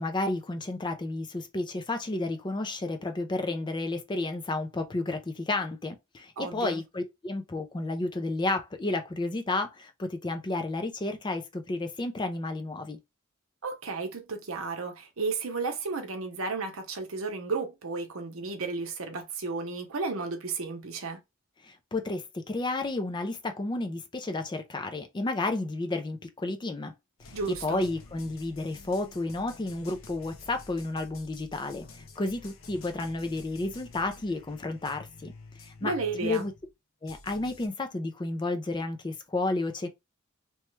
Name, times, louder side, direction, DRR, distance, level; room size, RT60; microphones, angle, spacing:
voice 1, 0.0-13.0 21.6-26.9 27.2-27.3 27.6-35.3 35.6-35.9 36.2-36.5 37.0-39.9, left 2 dB, 20° left, 0.4 m, -32 dB
voice 2, 6.4-6.8 13.6-21.2 27.3-27.8 35.8-36.5, right 4 dB, 75° right, 0.8 m, -33 dB
sound 1, 27.2-36.7 37.1-37.7, left 3 dB, 70° left, 0.7 m, -50 dB
3.0 x 2.2 x 3.1 m
head